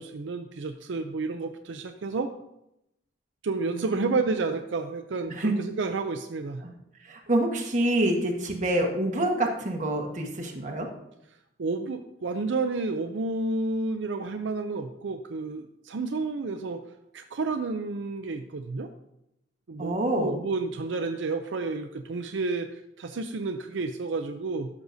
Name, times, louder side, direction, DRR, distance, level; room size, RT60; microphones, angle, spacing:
voice 1, 0.0-2.3 3.4-6.6 11.6-16.8 17.1-18.9 19.7-24.7, right 3 dB, 80° right, 6 dB, 0.5 m, -30 dB
voice 2, 3.7-4.2 5.3-5.6 6.6-6.7 7.0-10.9 19.8-20.4, right 1 dB, 40° right, 1 dB, 1.4 m, -27 dB
13.0 x 6.3 x 2.7 m, 0.84 s
head